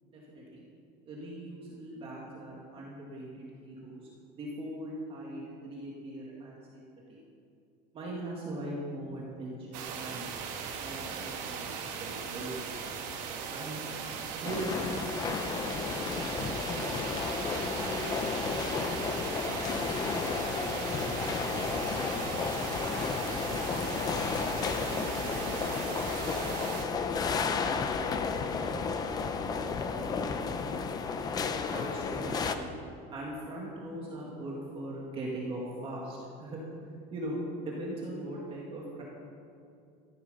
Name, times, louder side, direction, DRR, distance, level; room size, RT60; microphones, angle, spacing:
voice 1, 0.1-0.6 1.1-7.2 7.9-10.3 10.7-12.8 13.5-13.8 14.4-14.7 31.7-32.7 33.1-36.6 37.1-39.0, right 1 dB, 25° right, -4 dB, 2.0 m, -40 dB
sound 1, 9.7-26.8, right 6 dB, 80° right, 2.3 m, -38 dB
voice 2, 13.3-14.9 15.2-27.3 27.7-29.6, right 1 dB, 5° left, -5 dB, 2.8 m, -48 dB
Japan Tokyo Station Footsteps Annoucements, 14.4-32.5, left 5 dB, 20° left, 0.6 m, -32 dB
14.0 x 12.0 x 5.5 m, 2.5 s
cardioid pair, 180°, 21 cm